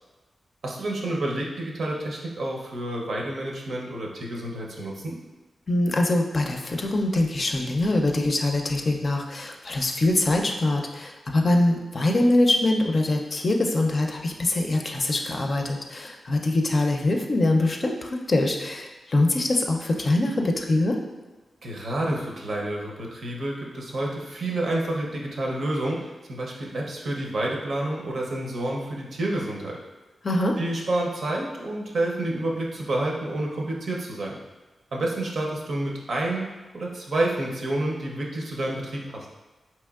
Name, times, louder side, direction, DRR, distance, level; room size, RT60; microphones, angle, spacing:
voice 1, 0.6-5.2 21.6-29.8 30.6-34.4 34.9-36.5 36.7-39.3, right 1 dB, 70° right, -2 dB, 0.6 m, -29 dB
voice 2, 5.7-21.0 30.2-30.6, left 2 dB, 50° left, 2 dB, 0.5 m, -23 dB
4.3 x 2.9 x 2.3 m, 1.2 s
cardioid pair, 60°, 0 cm